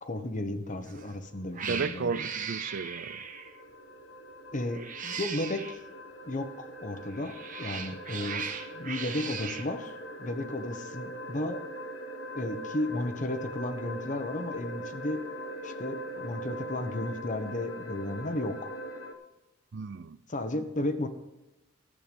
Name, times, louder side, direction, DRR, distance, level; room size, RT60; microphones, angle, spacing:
voice 1, 0.0-2.3 4.5-5.8 6.2-8.5 8.7-9.9 10.2-11.6 12.3-15.2 15.6-18.7 20.3-21.1, left 1 dB, 40° left, 1.1 m, -34 dB
Cat, 0.8-1.1 1.5-3.6 4.7-5.8 7.1-9.7, right 6 dB, 40° right, 1.1 m, -38 dB
sound 1, 0.9-19.1, equal, 65° left, 1.3 m, -42 dB
voice 2, 1.6-3.2 19.7-20.2, right 5 dB, 55° right, 0.4 m, -34 dB
13.5 x 8.2 x 5.3 m
head